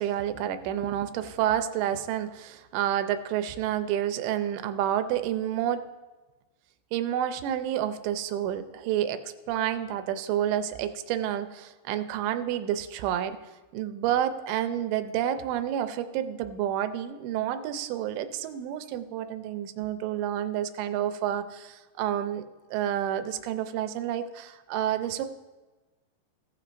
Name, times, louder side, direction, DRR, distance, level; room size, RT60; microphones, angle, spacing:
voice 1, 0.0-5.8 6.9-9.2 9.5-13.4 13.7-22.4 22.7-25.3, right 11 dB, 85° right, 10 dB, 2.8 m, -29 dB
15.5 x 11.5 x 2.6 m, 1.2 s
omnidirectional pair, 5.1 m